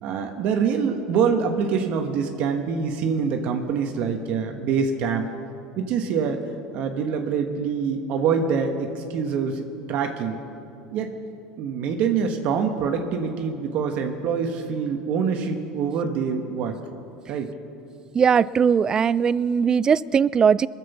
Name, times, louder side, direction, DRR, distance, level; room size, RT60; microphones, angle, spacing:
voice 1, 0.0-5.3 5.8-6.4 6.7-10.4 10.9-11.1 11.6-16.8 17.3-17.5, right 6 dB, 55° right, 4 dB, 1.2 m, -25 dB
voice 2, 18.1-20.7, right 7 dB, 30° right, 20 dB, 0.3 m, -19 dB
21.0 x 7.5 x 7.0 m, 2.5 s
supercardioid pair, 110°, 3 cm